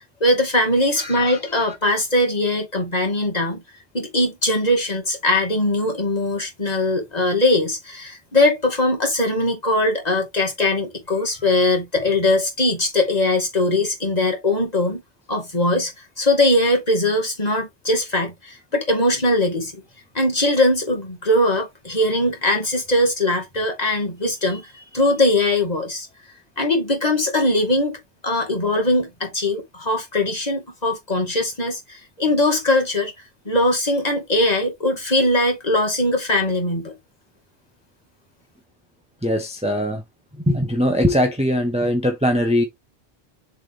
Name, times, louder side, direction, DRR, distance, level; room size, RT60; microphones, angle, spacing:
voice 1, 0.2-3.6 3.9-15.0 15.3-15.9 16.2-19.7 20.1-26.1 26.6-33.1 33.5-36.9, left 1 dB, 40° left, 2.4 m, -21 dB
voice 2, 1.0-1.4 39.2-40.0 40.5-42.6, equal, 5° right, 1.0 m, -21 dB
7.2 x 4.0 x 3.4 m
omnidirectional pair, 1.1 m